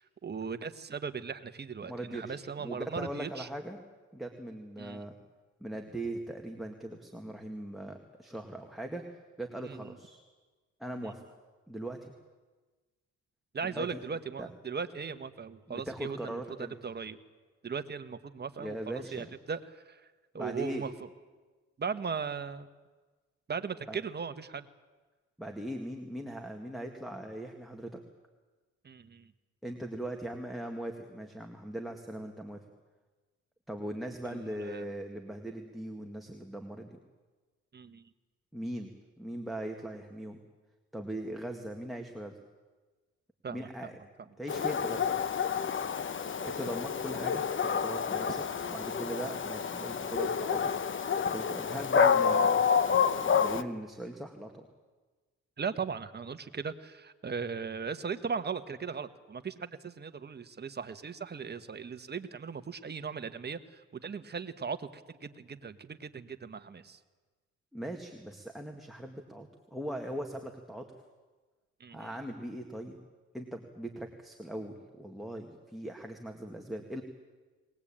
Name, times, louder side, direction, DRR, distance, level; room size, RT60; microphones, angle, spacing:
voice 1, 0.0-3.5 4.8-5.0 9.6-10.0 11.0-11.1 13.5-17.2 17.6-21.1 21.8-22.7 23.5-24.7 28.8-29.3 34.2-34.8 37.7-38.1 43.4-43.9 55.6-67.0 71.8-72.1, right 5 dB, 35° right, 10 dB, 1.4 m, -38 dB
voice 2, 1.8-3.8 4.1-5.1 5.6-9.0 9.4-10.2 10.8-11.2 11.7-12.1 13.6-14.0 14.4-14.5 15.7-16.7 18.6-19.3 20.3-20.8 23.9-24.0 25.4-28.0 29.6-32.6 33.7-37.0 38.5-40.4 40.9-42.4 43.5-44.0 44.4-45.3 46.4-47.5 47.8-51.0 51.3-52.6 53.2-54.7 67.7-70.9 71.9-73.0 73.3-77.0, right 1 dB, ahead, 2 dB, 2.2 m, -40 dB
Dog, 44.5-53.6, left 6 dB, 40° left, 1.1 m, -29 dB
22.0 x 19.5 x 8.9 m, 1.3 s
cardioid pair, 90°, 30 cm